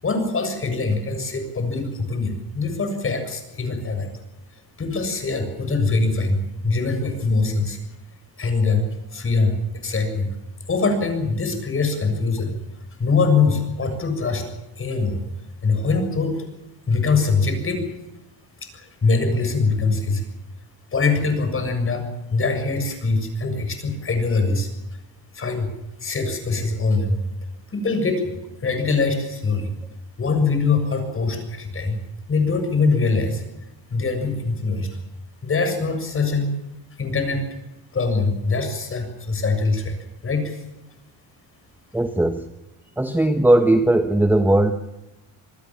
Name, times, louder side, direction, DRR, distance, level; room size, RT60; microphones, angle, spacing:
voice 1, 0.0-4.1 4.8-6.4 6.6-7.8 8.4-8.9 9.1-10.4 10.7-12.5 13.0-14.5 14.8-15.2 15.6-16.5 16.9-17.8 18.7-20.3 20.9-24.7 25.3-25.7 26.0-27.2 27.7-28.4 28.6-29.7 30.2-32.0 32.3-33.4 33.9-34.9 35.4-36.6 37.0-37.4 37.9-39.9 40.2-40.6, left 4 dB, 30° left, 7 dB, 7.0 m, -23 dB
voice 2, 41.9-42.5 43.0-44.7, right 1 dB, 5° right, 7 dB, 1.4 m, -18 dB
27.0 x 20.0 x 7.3 m, 0.96 s
cardioid pair, 130°, 43 cm